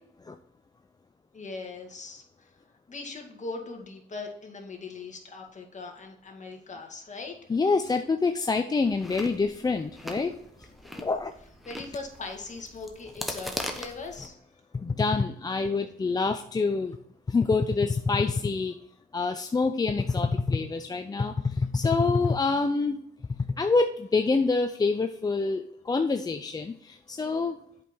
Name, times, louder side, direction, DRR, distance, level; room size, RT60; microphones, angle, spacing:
voice 1, 1.3-2.5 2.9-7.5 11.7-14.4, left 3 dB, 35° left, 2 dB, 2.0 m, -40 dB
voice 2, 7.5-10.4 10.9-11.3 14.7-17.0 17.3-18.7 19.1-23.0 23.6-27.6, left 4 dB, 20° left, 7 dB, 0.5 m, -26 dB
Chewing mastication, 8.8-14.3, equal, ahead, 1.2 m, -40 dB
8.0 x 5.3 x 4.5 m, 0.72 s
cardioid pair, 90°, 20 cm